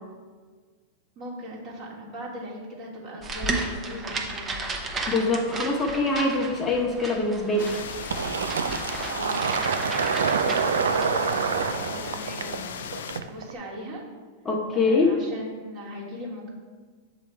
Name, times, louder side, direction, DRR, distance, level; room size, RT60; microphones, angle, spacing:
voice 1, 1.2-4.6 9.0-12.8 13.2-14.0 14.7-16.5, equal, 45° right, -4 dB, 1.8 m, -39 dB
sound 1, 3.2-11.1, right 3 dB, 25° right, 0.8 m, -34 dB
voice 2, 5.1-7.7 14.4-15.2, left 3 dB, 20° left, 0 dB, 0.9 m, -24 dB
sound 2, 7.6-13.2, left 7 dB, 80° left, 0.4 m, -37 dB
Fill (with liquid), 8.1-13.5, right 6 dB, 85° right, 0.3 m, -27 dB
6.8 x 3.2 x 4.5 m, 1.5 s
hypercardioid pair, 110°, 0 cm